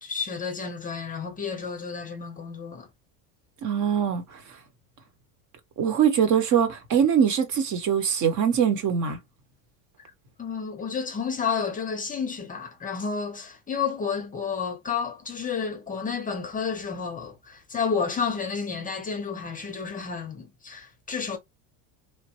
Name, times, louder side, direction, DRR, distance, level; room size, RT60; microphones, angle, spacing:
voice 1, 0.0-2.9 10.4-21.4, left 6 dB, 20° left, 0.6 m, -31 dB
voice 2, 3.6-4.2 5.8-9.2, right 8 dB, 45° right, 1.0 m, -22 dB
3.2 x 2.1 x 2.8 m
cardioid pair, 135°, 39 cm